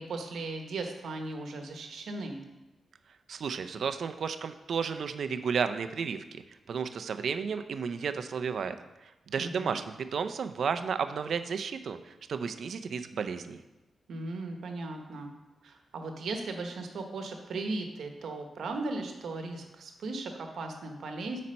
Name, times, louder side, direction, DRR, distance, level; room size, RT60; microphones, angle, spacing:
voice 1, 0.0-2.4 9.4-9.8 14.1-15.3 15.6-21.4, right 3 dB, 75° right, 4 dB, 1.0 m, -37 dB
voice 2, 3.3-6.4 6.7-8.8 9.3-13.6, right 6 dB, 60° right, 10 dB, 0.4 m, -32 dB
8.6 x 4.2 x 5.3 m, 1.0 s
wide cardioid pair, 175°, 0 cm